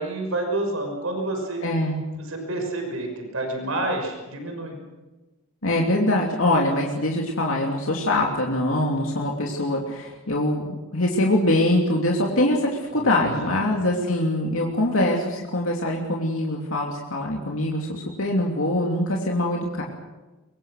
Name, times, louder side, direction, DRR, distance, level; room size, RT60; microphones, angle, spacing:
voice 1, 0.0-1.7 2.2-4.8 12.9-13.5, right 2 dB, 80° right, 3 dB, 5.9 m, -29 dB
voice 2, 1.6-2.0 5.6-19.8, left 1 dB, 70° left, -1 dB, 2.9 m, -23 dB
23.5 x 23.0 x 6.5 m, 1.2 s
head